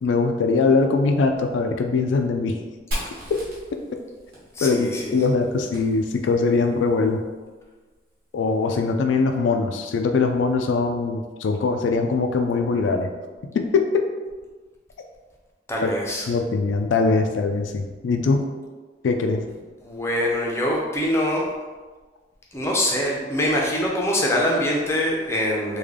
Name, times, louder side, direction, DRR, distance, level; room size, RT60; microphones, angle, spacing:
voice 1, 0.0-2.6 4.6-7.2 8.3-13.1 13.5-14.0 15.8-15.9 16.3-18.5 19.0-19.4, left 4 dB, 85° left, 4 dB, 0.3 m, -22 dB
Fire, 2.9-6.6, equal, 50° right, 1.2 m, -36 dB
voice 2, 4.5-5.2 15.7-16.3 19.8-21.4 22.5-25.8, left 1 dB, 15° left, -2 dB, 0.5 m, -24 dB
3.3 x 2.2 x 3.6 m, 1.3 s
head